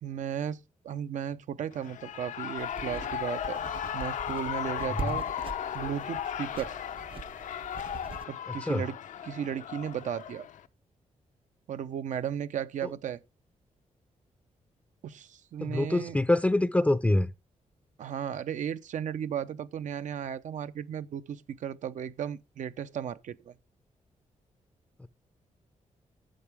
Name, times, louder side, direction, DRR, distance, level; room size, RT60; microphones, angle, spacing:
voice 1, 0.0-3.6 3.9-5.2 5.7-6.8 8.3-9.0 9.2-10.5 11.7-13.2 15.0-16.2 18.0-23.6, right 9 dB, 75° right, 0.8 m, -35 dB
Shout / Cheering, 1.7-10.7, left 9 dB, 75° left, 0.7 m, -36 dB
sound 1, 2.6-8.2, right 5 dB, 45° right, 0.7 m, -43 dB
voice 2, 8.5-8.8 15.6-17.3 25.0-25.1, left 1 dB, 10° left, 0.5 m, -25 dB
11.5 x 8.3 x 3.5 m
cardioid pair, 115°, 13 cm